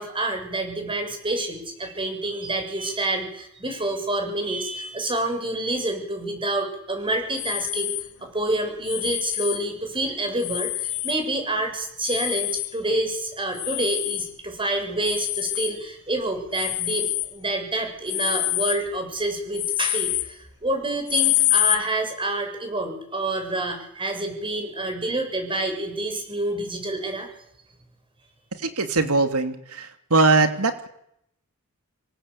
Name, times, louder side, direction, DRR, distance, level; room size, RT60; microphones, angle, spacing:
voice 1, 0.0-7.9 8.2-27.3, right 2 dB, 25° right, 5 dB, 7.5 m, -28 dB
sound 1, 7.3-8.1 8.8-9.6 10.4-11.2 12.0-12.7 13.5-14.3 15.0-15.8 16.5-17.3 18.1-18.8 19.5-20.3 21.1-21.8, left 17 dB, 75° left, 1.0 m, -26 dB
voice 2, 28.6-30.9, right 3 dB, 85° right, 8 dB, 3.0 m, -21 dB
26.5 x 24.0 x 8.7 m, 0.74 s
head